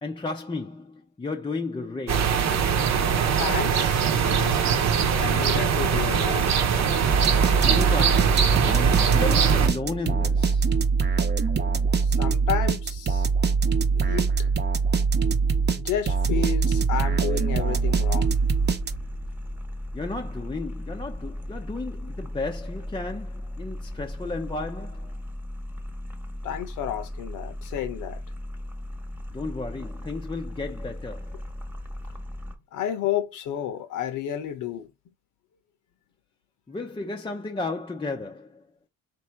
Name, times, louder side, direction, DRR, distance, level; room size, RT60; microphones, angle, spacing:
voice 1, 0.0-2.4 7.7-10.8 19.9-25.2 29.3-31.5 36.7-38.7, left 3 dB, 15° left, 0.5 m, -34 dB
sound 1, 2.1-9.7, right 7 dB, 65° right, 0.9 m, -22 dB
voice 2, 3.4-4.6 5.2-6.5 12.0-13.3 14.0-14.3 15.8-18.4 26.4-28.2 32.7-34.9, left 9 dB, 90° left, 1.0 m, -31 dB
sound 2, 7.1-19.3, right 5 dB, 35° right, 0.8 m, -23 dB
sound 3, 17.5-32.6, left 1 dB, 5° right, 1.2 m, -37 dB
3.3 x 2.8 x 4.5 m
cardioid pair, 90°, 30 cm